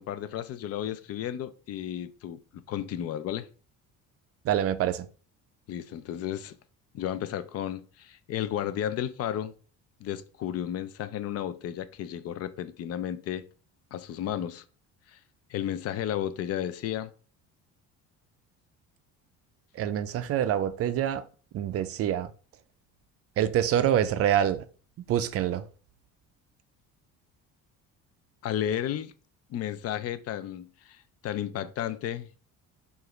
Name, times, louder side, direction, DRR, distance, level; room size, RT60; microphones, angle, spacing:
voice 1, 0.0-3.5 5.7-6.6 6.9-9.5 10.0-13.5 13.9-14.6 15.1-15.2 15.5-17.1 28.4-29.1 29.5-32.3, left 10 dB, 50° left, 0.4 m, -33 dB
voice 2, 4.4-5.1 19.7-21.2 21.5-22.3 23.4-24.6 25.1-25.7, right 10 dB, 45° right, 0.4 m, -26 dB
4.8 x 2.5 x 3.1 m
cardioid pair, 130°, 33 cm